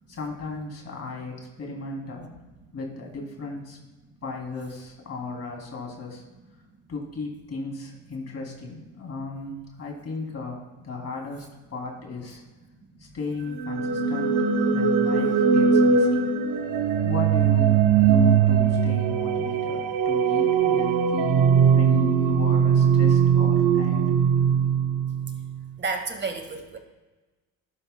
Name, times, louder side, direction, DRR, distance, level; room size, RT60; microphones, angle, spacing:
voice 1, 0.1-2.4 2.7-3.8 4.2-6.2 6.9-11.5 11.7-12.4 13.0-14.4 14.7-16.3 17.0-24.1, left 3 dB, 40° left, 0 dB, 2.9 m, -35 dB
sound 1, 13.5-25.4, right 6 dB, 70° right, 1.0 m, -20 dB
voice 2, 25.8-26.8, right 4 dB, 25° right, 5 dB, 1.6 m, -30 dB
12.0 x 10.0 x 2.2 m, 1.2 s
supercardioid pair, 90°, 40 cm